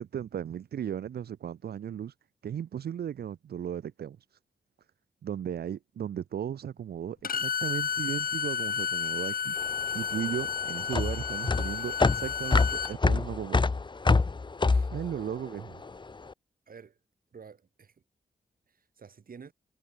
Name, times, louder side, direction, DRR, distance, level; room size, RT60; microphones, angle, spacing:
voice 1, 0.0-2.1 2.4-4.4 5.2-9.6 9.9-13.7 14.9-15.8, right 9 dB, 80° right, 2.0 m, -36 dB
Bowed string instrument, 7.2-12.9, left 7 dB, 65° left, 1.5 m, -32 dB
sound 1, 9.6-16.1, left 3 dB, 30° left, 0.8 m, -26 dB
voice 2, 14.6-15.0 16.7-17.0 17.3-18.0 18.7-19.5, right 6 dB, 65° right, 6.1 m, -50 dB
supercardioid pair, 40°, 16 cm